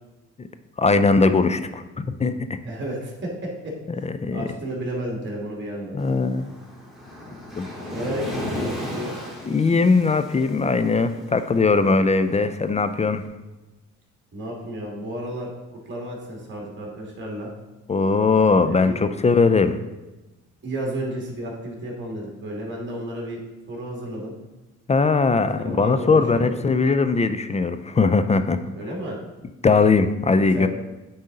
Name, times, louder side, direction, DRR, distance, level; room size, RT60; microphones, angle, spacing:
voice 1, 0.8-2.6 4.0-4.5 5.9-6.5 7.6-7.7 9.4-13.2 17.9-19.8 24.9-28.6 29.6-30.7, left 4 dB, 25° left, 10 dB, 0.4 m, -20 dB
voice 2, 2.6-3.7 4.3-5.9 7.9-9.1 14.3-17.5 18.7-19.0 20.6-23.4 23.7-24.3 25.6-26.5 28.7-29.2 30.5-30.7, right 1 dB, 40° right, -2 dB, 2.2 m, -32 dB
Waves surf, 6.0-13.1, left 1 dB, ahead, 2.0 m, -35 dB
9.1 x 3.9 x 3.9 m, 1.1 s
cardioid pair, 90°, 30 cm